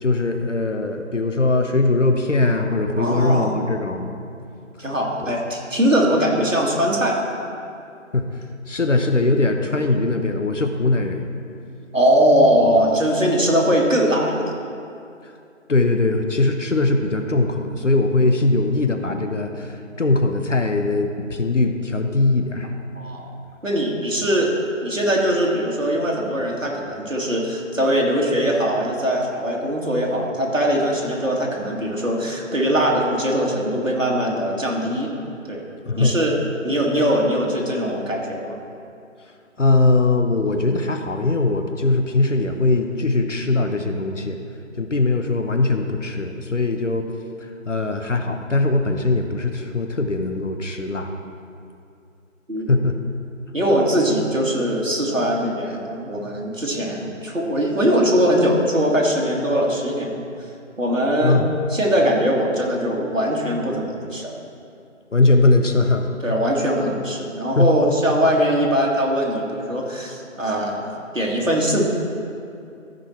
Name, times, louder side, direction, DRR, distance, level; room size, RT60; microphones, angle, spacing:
voice 1, 0.0-4.1 5.2-5.3 8.1-11.2 15.2-15.3 15.7-22.7 35.9-36.1 39.6-44.4 44.8-47.1 47.4-51.1 52.7-52.9 61.2-61.5 65.1-66.1 67.6-67.7, left 2 dB, 65° left, 5 dB, 0.9 m, -20 dB
voice 2, 3.0-3.5 4.8-7.2 11.9-14.5 22.9-23.3 23.6-24.5 24.8-35.1 35.4-35.6 36.0-36.4 36.6-38.6 52.5-52.7 53.5-60.3 60.8-61.4 61.7-64.3 66.2-71.9, equal, 75° right, -2 dB, 2.1 m, -21 dB
14.0 x 5.4 x 4.4 m, 2.5 s
figure-of-eight pair, 175°, 39 cm